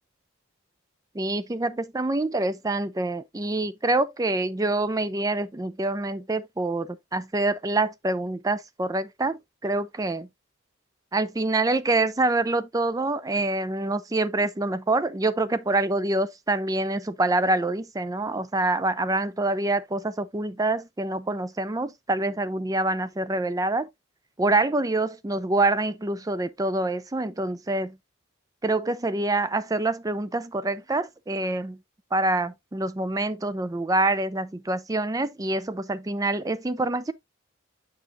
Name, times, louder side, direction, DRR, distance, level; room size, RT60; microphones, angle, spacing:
voice 1, 1.1-10.3 11.1-23.9 24.4-28.0 28.6-31.8 32.1-37.1, right 2 dB, 15° right, 0.4 m, -26 dB
7.1 x 6.1 x 2.5 m
head